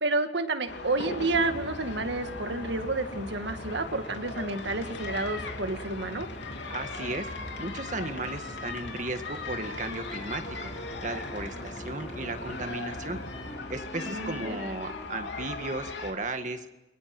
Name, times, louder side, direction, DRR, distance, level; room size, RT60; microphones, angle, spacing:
voice 1, 0.0-6.3 14.0-14.6, right 2 dB, 70° right, 8 dB, 2.1 m, -30 dB
sound 1, 0.7-16.1, left 3 dB, 75° left, 3.0 m, -39 dB
sound 2, 1.2-13.6, equal, 45° left, 5.8 m, -44 dB
voice 2, 6.7-7.3 7.6-10.7 11.0-13.2 13.7-16.7, right 2 dB, 40° right, 8 dB, 1.9 m, -35 dB
sound 3, 9.9-15.1, left 1 dB, 15° left, 3.3 m, -45 dB
29.5 x 23.0 x 6.2 m, 0.99 s
head